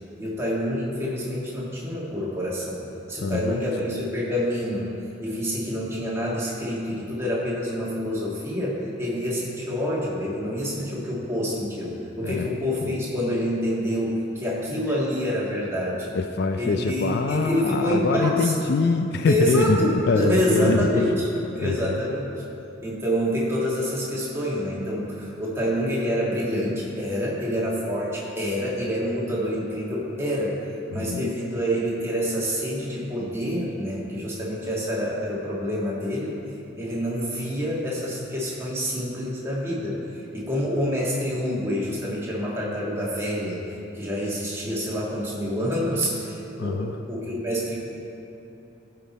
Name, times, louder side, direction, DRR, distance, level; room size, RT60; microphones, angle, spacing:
voice 1, 0.2-2.8 3.1-4.9 5.2-16.1 16.5-18.5 19.3-21.3 21.5-22.4 22.8-30.6 30.9-36.4 36.8-43.6 43.9-47.7, equal, 15° right, -6 dB, 1.7 m, -27 dB
voice 2, 3.2-3.6 12.2-12.5 12.8-12.9 16.1-21.9 30.9-31.3 46.6-47.0, left 4 dB, 50° left, 7 dB, 0.3 m, -24 dB
14.0 x 5.8 x 4.2 m, 3.0 s
head